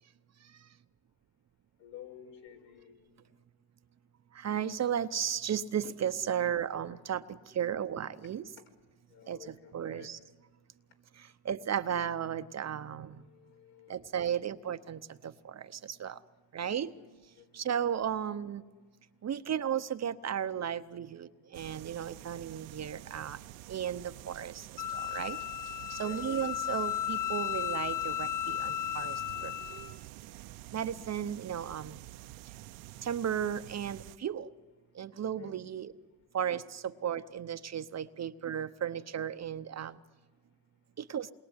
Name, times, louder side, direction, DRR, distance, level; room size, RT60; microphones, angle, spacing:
voice 1, 1.8-3.1 9.1-10.1 13.1-14.2 16.6-17.7 26.0-26.5 35.3-35.5, left 9 dB, 75° left, 3 dB, 5.3 m, -52 dB
voice 2, 4.3-8.5 9.3-10.2 11.1-13.3 13.9-16.2 16.5-16.9 17.5-18.6 19.2-23.4 23.7-25.4 25.9-29.8 30.7-32.0 33.0-34.5 34.9-35.9 36.3-40.0 41.0-41.3, right 9 dB, 35° right, 10 dB, 0.9 m, -35 dB
sound 1, 21.5-34.2, right 16 dB, 70° right, 1.0 m, -48 dB
Wind instrument woodwind instrument, 24.8-29.9, left 11 dB, 60° left, 1.8 m, -35 dB
28.0 x 22.0 x 9.7 m, 1.4 s
cardioid pair, 110°, 49 cm